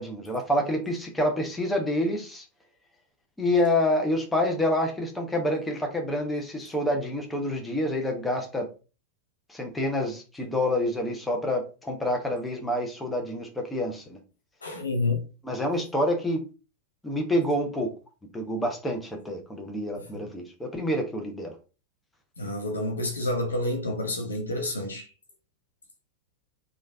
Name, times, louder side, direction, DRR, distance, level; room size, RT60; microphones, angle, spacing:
voice 1, 0.0-2.4 3.4-8.7 9.5-14.2 15.4-16.4 17.0-17.9 18.3-21.6, left 1 dB, 10° left, 0.7 m, -27 dB
voice 2, 14.6-15.2 20.0-20.2 22.4-25.1, left 2 dB, 75° left, 0.7 m, -29 dB
3.2 x 2.4 x 2.3 m
figure-of-eight pair, 90°, 0 cm